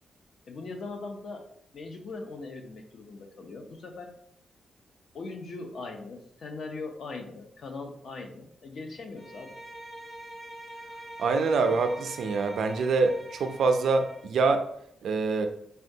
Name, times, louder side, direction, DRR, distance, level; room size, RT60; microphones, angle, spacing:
voice 1, 0.5-1.4 1.7-4.1 5.1-9.6, left 3 dB, 60° left, 3 dB, 0.5 m, -40 dB
Bowed string instrument, 9.1-14.3, right 1 dB, ahead, 0.6 m, -44 dB
voice 2, 11.2-14.7 15.0-15.5, right 4 dB, 70° right, 7 dB, 0.3 m, -25 dB
3.5 x 2.2 x 2.7 m, 0.69 s
cardioid pair, 125°, 0 cm